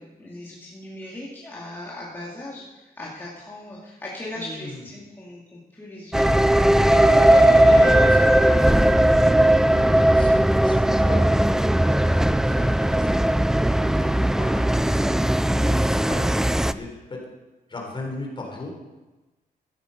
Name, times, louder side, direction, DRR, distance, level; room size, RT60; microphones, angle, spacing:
voice 1, 0.0-6.6, left 1 dB, 15° left, -6 dB, 2.5 m, -39 dB
voice 2, 4.3-4.8 8.0-8.4 9.5-11.6 12.0-13.2 13.8-17.3 17.7-18.7, left 2 dB, 30° left, 0 dB, 3.6 m, -37 dB
sound 1, 6.1-16.7, right 1 dB, 5° right, 0.3 m, -18 dB
Bowed string instrument, 6.9-10.7, left 11 dB, 90° left, 0.5 m, -36 dB
13.5 x 10.0 x 5.2 m, 1.1 s
wide cardioid pair, 135°, 16 cm